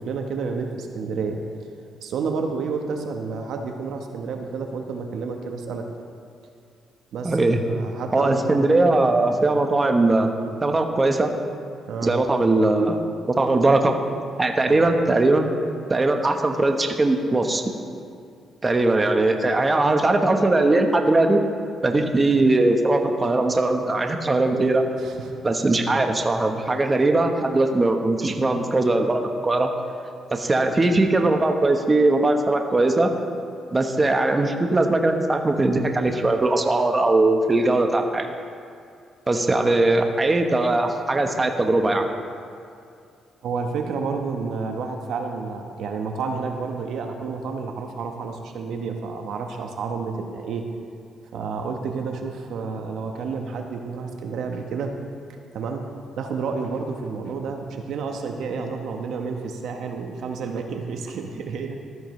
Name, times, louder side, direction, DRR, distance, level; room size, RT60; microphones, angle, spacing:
voice 1, 0.0-1.4 2.0-5.9 7.1-7.4 7.7-8.7 11.9-12.2 14.6-14.9 25.0-25.4 43.4-50.6 51.3-54.9 55.5-55.9 56.2-61.9, right 5 dB, 75° right, 3 dB, 1.1 m, -30 dB
voice 2, 7.2-7.6 8.1-10.3 10.6-11.3 12.0-13.0 13.3-13.9 14.4-15.5 15.9-17.6 18.6-21.4 21.8-24.8 25.4-29.7 30.3-33.1 33.7-38.3 39.3-42.0, right 2 dB, 25° right, 4 dB, 1.1 m, -20 dB
14.0 x 13.0 x 3.2 m, 2.4 s
cardioid pair, 90°, 0 cm